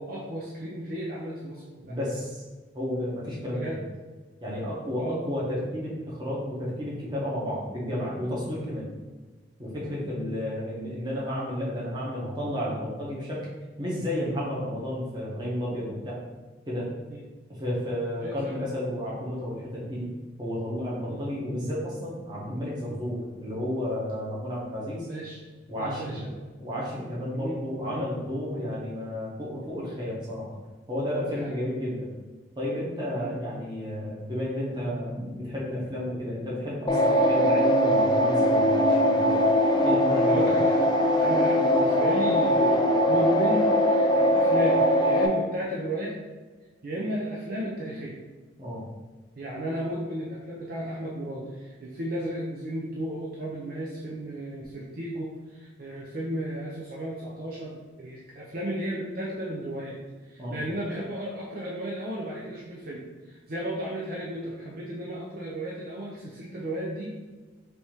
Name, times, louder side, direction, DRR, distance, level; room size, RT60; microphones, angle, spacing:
voice 1, 0.0-2.0 3.5-3.8 5.0-5.3 7.9-8.0 8.6-8.8 17.1-17.2 18.2-18.6 21.1-21.2 25.1-25.4 25.8-26.4 27.3-27.6 27.9-28.1 31.3-31.6 33.2-33.3 40.2-46.2 46.8-48.2 49.4-60.0 60.3-67.1, right 1 dB, 45° right, -4 dB, 0.6 m, -34 dB
voice 2, 1.8-2.4 2.7-3.8 4.4-8.9 9.6-13.5 13.8-16.2 16.7-16.9 17.5-20.1 20.4-25.1 25.7-26.2 26.6-30.6 30.9-32.1 32.6-39.4 39.8-40.5 48.6-48.9 60.4-60.6, left 1 dB, 20° right, -6 dB, 1.1 m, -32 dB
sound 1, 36.9-45.3, equal, 20° left, 0.3 m, -21 dB
3.4 x 2.7 x 4.6 m, 1.3 s
head